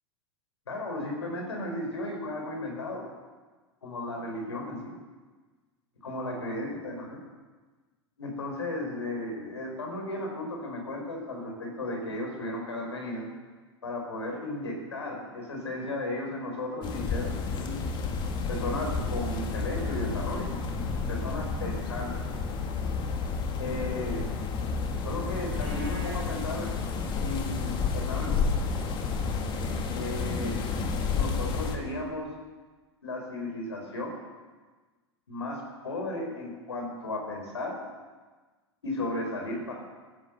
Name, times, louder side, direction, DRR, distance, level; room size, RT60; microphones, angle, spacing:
voice 1, 0.7-3.0 3.8-5.0 6.0-7.2 8.2-13.3 13.8-17.9 18.5-20.5 21.1-22.3 23.6-24.2 25.0-26.7 27.2-28.5 29.9-30.6 31.1-32.3 33.0-34.1 35.3-37.8 38.8-39.7, left 1 dB, 75° left, 1 dB, 4.9 m, -35 dB
sound 1, 16.8-31.8, left 4 dB, 30° left, 2.1 m, -31 dB
Livestock farm animals working animals, 25.4-26.3, right 4 dB, 40° right, 5.9 m, -44 dB
16.0 x 11.0 x 6.8 m, 1.3 s
figure-of-eight pair, 85°, 14 cm